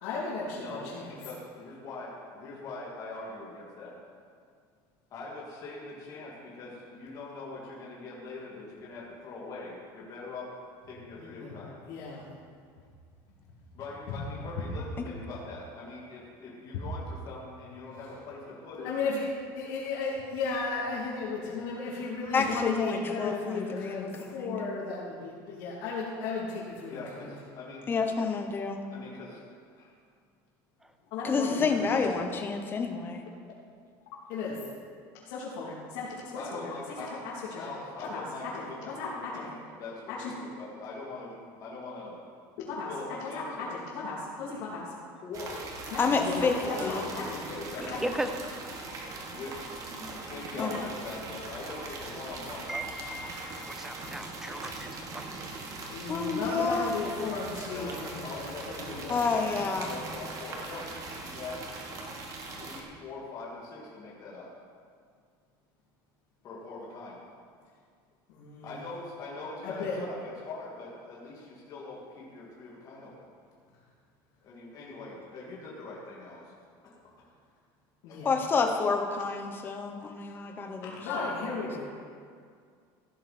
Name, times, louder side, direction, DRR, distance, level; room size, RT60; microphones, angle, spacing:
voice 1, 0.0-1.1 11.2-12.2 14.1-14.2 18.8-27.3 31.1-31.8 34.3-34.6 35.2-36.1 36.3-36.7 37.5-37.6 38.1-38.2 38.6-38.7 39.0-39.4 40.1-40.3 42.6-42.9 43.3-44.9 45.9-47.4 47.9-48.0 50.6-50.8 55.9-59.2 68.3-68.8 69.6-70.0 78.0-78.3 80.8-81.8, left 4 dB, 75° left, -8 dB, 3.1 m, -35 dB
voice 2, 0.6-3.9 5.1-10.5 10.9-11.8 13.7-18.9 26.9-27.9 28.9-29.4 29.7-29.9 36.4-37.1 37.6-42.2 42.9-43.7 45.2-45.7 46.6-48.0 49.3-49.7 50.2-52.7 57.7-59.5 59.8-61.7 62.6-64.5 66.4-67.2 68.6-73.3 74.4-76.5 76.8-77.0 78.1-78.3, left 3 dB, 35° left, -5 dB, 2.4 m, -42 dB
voice 3, 22.3-24.6 27.9-28.8 31.2-33.2 46.0-47.1 50.6-50.7 56.1-56.9 59.1-59.9 78.2-81.0, left 4 dB, 20° left, 5 dB, 1.0 m, -29 dB
sound 1, 45.3-62.8, right 3 dB, 35° right, 1.5 m, -41 dB
voice 4, 48.0-48.4 52.7-55.3, right 1 dB, 5° right, 6 dB, 0.7 m, -36 dB
15.5 x 10.0 x 4.4 m, 2.2 s
cardioid pair, 160°, 10 cm